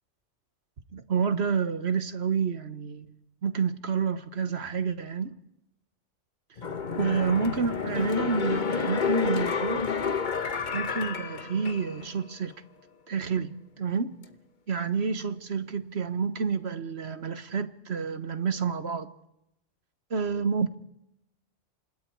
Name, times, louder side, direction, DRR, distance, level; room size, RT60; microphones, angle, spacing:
voice 1, 0.9-3.1 3.4-5.3 7.0-9.8 10.7-12.6 13.1-14.1 14.7-19.1 20.1-20.8, right 5 dB, 55° right, 1.5 m, -29 dB
sound 1, 6.6-12.1 12.5-12.6, left 5 dB, 40° left, 1.2 m, -30 dB
28.5 x 26.0 x 4.7 m
omnidirectional pair, 1.3 m